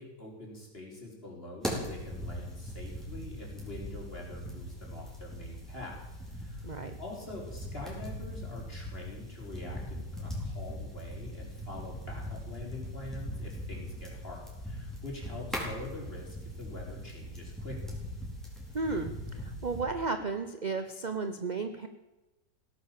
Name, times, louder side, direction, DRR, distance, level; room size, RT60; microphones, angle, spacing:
voice 1, 0.0-6.0 6.3-17.9, left 1 dB, 30° left, -2 dB, 4.7 m, -45 dB
sound 1, 1.6-19.8, equal, ahead, 4.4 m, -40 dB
voice 2, 6.6-7.0 18.7-21.9, right 3 dB, 40° right, 8 dB, 0.7 m, -34 dB
17.0 x 11.0 x 7.6 m, 1.1 s
omnidirectional pair, 1.9 m